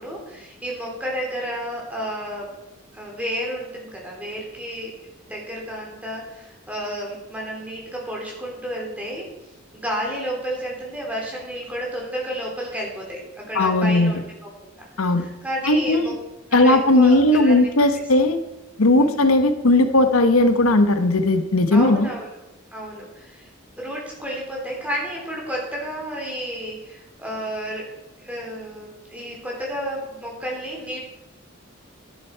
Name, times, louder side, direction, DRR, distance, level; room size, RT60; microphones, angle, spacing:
voice 1, 0.0-2.5 2.9-4.9 5.3-9.3 9.7-14.9 15.2-16.1 16.5-18.0 19.0-19.2 21.7-22.3 22.7-23.5 23.8-27.9 28.2-31.0, equal, 5° right, -2 dB, 3.2 m, -31 dB
voice 2, 13.5-14.1 15.0-15.2 15.7-16.1 16.5-18.4 18.8-22.1, left 2 dB, 85° left, 8 dB, 1.0 m, -17 dB
11.0 x 10.5 x 4.6 m, 0.97 s
head